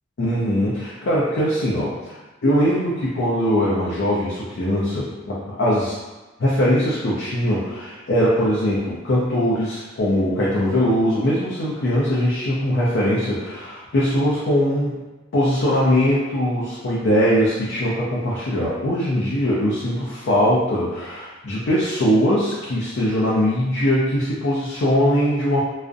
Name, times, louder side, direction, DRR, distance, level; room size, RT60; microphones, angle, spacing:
voice 1, 0.2-2.2 2.4-5.9 6.4-15.0 15.3-25.6, equal, 60° left, -7 dB, 0.5 m, -21 dB
2.4 x 2.0 x 2.5 m, 1.2 s
head